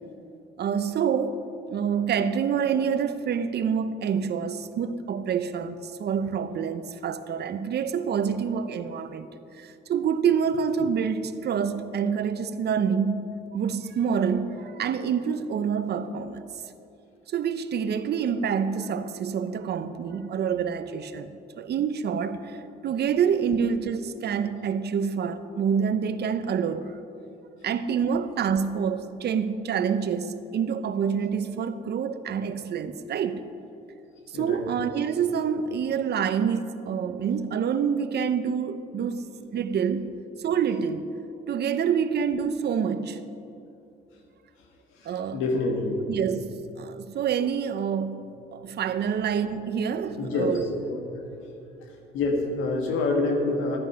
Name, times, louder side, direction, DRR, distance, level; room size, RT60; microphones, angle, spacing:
voice 1, 0.6-1.4 1.7-9.3 9.6-16.4 17.3-27.0 27.6-33.5 34.3-41.1 41.5-43.2 45.0-45.4 46.1-50.7, right 7 dB, 55° right, 0.8 m, -27 dB
voice 2, 45.0-46.0 50.2-50.6 50.9-51.0 52.1-53.8, left 3 dB, 85° left, 1.8 m, -26 dB
13.0 x 9.4 x 5.6 m
supercardioid pair, 80°, 20 cm